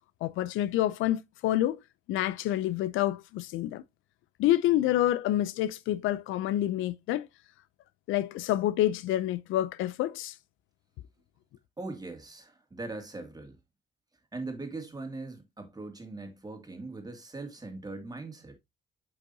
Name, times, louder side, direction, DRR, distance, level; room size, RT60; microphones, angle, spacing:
voice 1, 0.2-1.8 2.1-3.8 4.4-7.3 8.1-10.4, left 13 dB, 90° left, 0.5 m, -28 dB
voice 2, 11.8-13.6 14.3-18.6, right 3 dB, 20° right, 2.2 m, -40 dB
8.3 x 5.4 x 2.7 m
cardioid pair, 90°, 20 cm